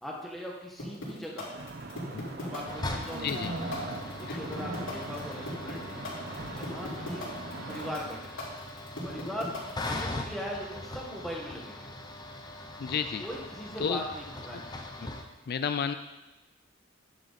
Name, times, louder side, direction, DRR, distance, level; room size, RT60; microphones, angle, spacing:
voice 1, 0.0-1.5 2.4-3.6 4.1-6.1 6.5-7.3 7.7-8.5 9.0-11.9 13.2-14.7, equal, ahead, -3 dB, 1.6 m, -40 dB
sound 1, 0.8-10.0, left 2 dB, 75° left, 4.2 m, -39 dB
sound 2, 1.5-8.0, right 2 dB, 50° right, 0.9 m, -40 dB
sound 3, 2.7-15.2, left 2 dB, 20° left, 0.9 m, -40 dB
voice 2, 3.2-3.5 4.3-4.4 12.8-13.2 13.8-14.0 14.5-14.6 15.0-15.1 15.5-15.9, left 7 dB, 50° left, 9 dB, 0.4 m, -31 dB
11.5 x 8.0 x 4.1 m, 1.1 s
head